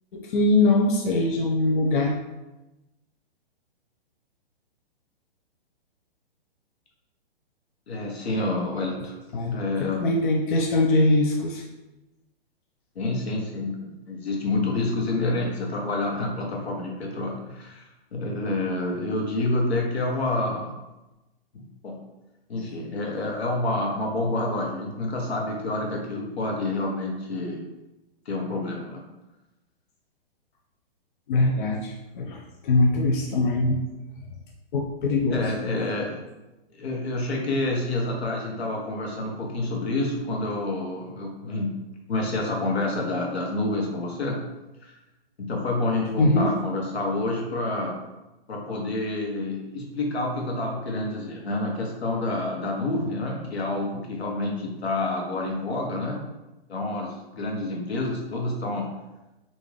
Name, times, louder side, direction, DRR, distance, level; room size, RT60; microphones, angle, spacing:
voice 1, 0.1-2.1 9.3-11.6 31.3-32.4 32.6-33.8 34.7-35.4 46.2-46.5, left 2 dB, 55° left, 0 dB, 0.5 m, -22 dB
voice 2, 7.9-9.1 9.5-10.0 12.9-17.8 18.1-20.8 21.5-22.0 22.5-27.6 28.3-29.0 35.3-36.2 36.7-41.7 42.1-44.4 44.8-45.0 45.4-47.9 48.5-56.2 56.7-58.9, left 2 dB, 85° left, -1 dB, 1.2 m, -28 dB
3.6 x 2.6 x 3.3 m, 1.0 s
hypercardioid pair, 150°, 31 cm